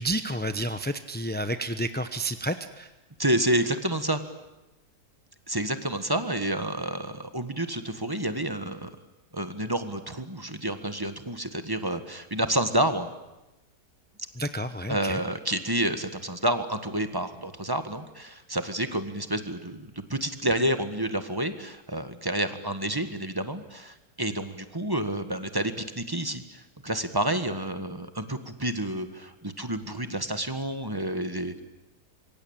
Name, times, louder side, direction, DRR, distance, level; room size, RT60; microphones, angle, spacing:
voice 1, 0.0-2.9 14.4-15.2, right 1 dB, 10° left, 9 dB, 0.5 m, -30 dB
voice 2, 3.2-4.2 5.5-8.9 9.3-13.1 14.9-31.6, right 1 dB, 15° right, 9 dB, 1.4 m, -29 dB
26.0 x 23.0 x 8.9 m, 1.0 s
omnidirectional pair, 1.8 m